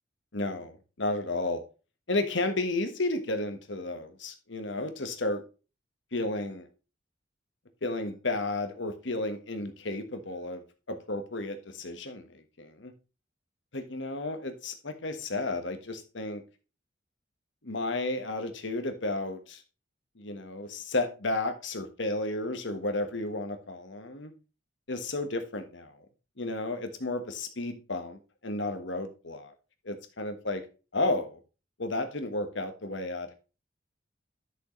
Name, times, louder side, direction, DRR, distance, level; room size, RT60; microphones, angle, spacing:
voice 1, 0.3-1.6 2.1-5.4 6.1-6.7 7.8-10.6 10.9-12.9 13.7-16.4 17.6-19.6 20.2-24.3 24.9-25.9 26.4-29.5 29.8-30.6 30.9-31.4 31.8-33.4, left 2 dB, 75° left, 8 dB, 1.4 m, -32 dB
11.0 x 6.4 x 3.2 m, 0.32 s
head